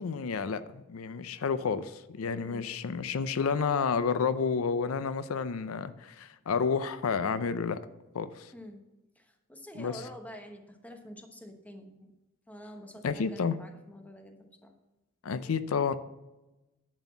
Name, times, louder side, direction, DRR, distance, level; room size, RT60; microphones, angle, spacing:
voice 1, 0.0-7.8 8.1-8.5 9.8-9.9 13.0-13.6 15.2-15.9, left 5 dB, 90° left, 13 dB, 0.5 m, -30 dB
voice 2, 8.5-8.8 9.2-12.1 12.5-14.7, equal, 5° left, 4 dB, 1.0 m, -47 dB
10.5 x 4.2 x 7.1 m, 1.0 s
head